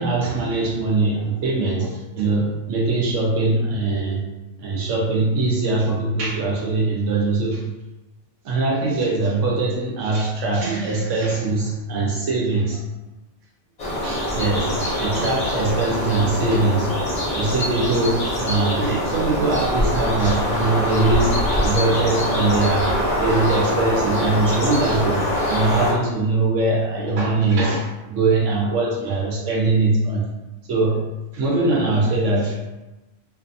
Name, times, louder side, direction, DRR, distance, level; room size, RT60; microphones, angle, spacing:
voice 1, 0.0-4.2 4.6-7.6 8.4-12.8 14.0-16.9 17.3-21.3 21.6-22.9 23.1-25.2 25.5-30.2 30.7-31.0 31.3-32.5, right 3 dB, 85° right, -3 dB, 1.1 m, -22 dB
sound 1, 13.8-25.9, left 1 dB, 40° left, 0.7 m, -23 dB
2.6 x 2.6 x 2.6 m, 1.0 s
omnidirectional pair, 1.2 m